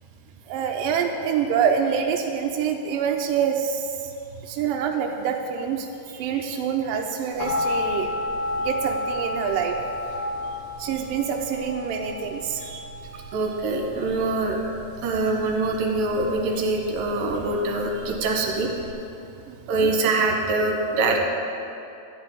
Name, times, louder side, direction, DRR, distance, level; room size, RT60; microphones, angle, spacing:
voice 1, 0.5-3.9 4.4-5.9 6.2-8.1 8.6-9.8 10.8-12.7 19.5-19.9, right 7 dB, 80° right, 2 dB, 2.0 m, -26 dB
voice 2, 6.1-6.5 12.6-12.8 13.3-14.6 15.0-18.7 19.7-21.2, right 3 dB, 65° right, 1 dB, 2.7 m, -24 dB
sound 1, 7.4-18.9, left 2 dB, 55° left, 3.2 m, -32 dB
12.5 x 5.2 x 9.0 m, 2.7 s
omnidirectional pair, 4.6 m